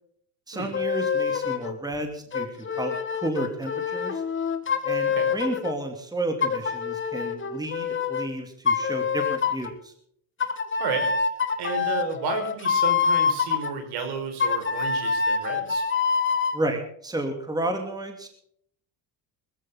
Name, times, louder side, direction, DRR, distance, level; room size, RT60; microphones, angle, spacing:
voice 1, 0.5-4.2 4.8-9.9 16.5-18.3, right 1 dB, 10° right, 4 dB, 2.8 m, -32 dB
sound 1, 0.7-1.7 2.3-5.7 6.4-8.3 8.7-9.7 10.4-13.7 14.4-16.6, left 6 dB, 30° left, 1.8 m, -26 dB
voice 2, 11.6-15.8, right 5 dB, 65° right, 5 dB, 5.1 m, -32 dB
20.5 x 14.0 x 3.9 m, 0.65 s
supercardioid pair, 95°, 42 cm